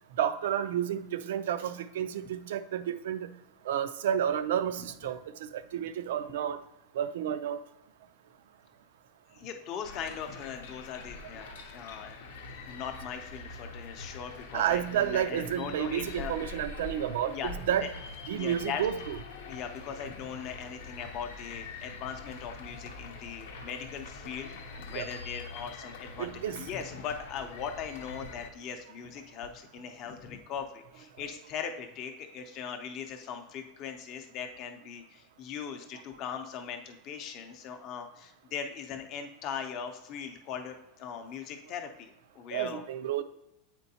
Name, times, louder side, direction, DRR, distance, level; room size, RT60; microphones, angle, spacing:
voice 1, 0.2-3.3 3.7-5.2 5.5-6.6 6.9-7.6 14.5-17.9 18.3-19.2 24.9-25.1 26.2-26.6 42.5-43.2, right 10 dB, 90° right, 11 dB, 0.4 m, -31 dB
voice 2, 9.3-12.2 12.7-16.3 17.3-17.5 17.8-17.9 18.3-18.8 19.5-26.3 26.6-42.8, left 7 dB, 35° left, 6 dB, 0.5 m, -40 dB
sound 1, 9.8-28.5, left 4 dB, 90° left, 0.7 m, -44 dB
8.1 x 4.4 x 2.8 m, 0.84 s
supercardioid pair, 170°, 0 cm